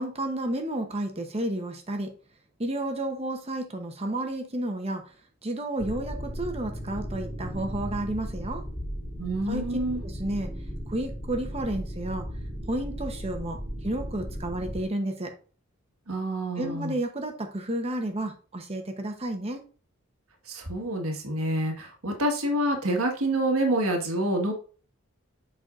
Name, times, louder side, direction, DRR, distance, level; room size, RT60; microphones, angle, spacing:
voice 1, 0.0-2.1 2.6-5.1 5.4-8.6 9.5-10.5 10.9-12.3 12.7-15.3 16.6-19.6, right 1 dB, 30° right, 5 dB, 0.9 m, -31 dB
sound 1, 5.8-14.8, equal, 10° left, 2.4 m, -36 dB
voice 2, 9.2-10.0 16.1-16.9 20.4-24.5, right 1 dB, 85° right, 2 dB, 1.6 m, -27 dB
7.8 x 5.6 x 2.5 m, 0.38 s
head